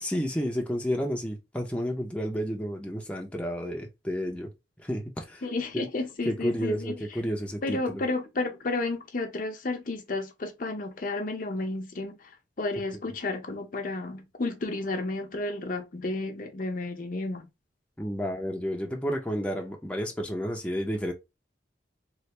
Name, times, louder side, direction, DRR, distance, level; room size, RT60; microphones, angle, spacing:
voice 1, 0.0-4.5 4.8-5.4 5.7-5.9 6.3-8.0 18.0-21.1, equal, 5° left, 0.5 m, -31 dB
voice 2, 5.4-6.9 7.6-12.3 12.6-17.5, left 2 dB, 45° left, 0.6 m, -32 dB
3.2 x 2.5 x 2.9 m
head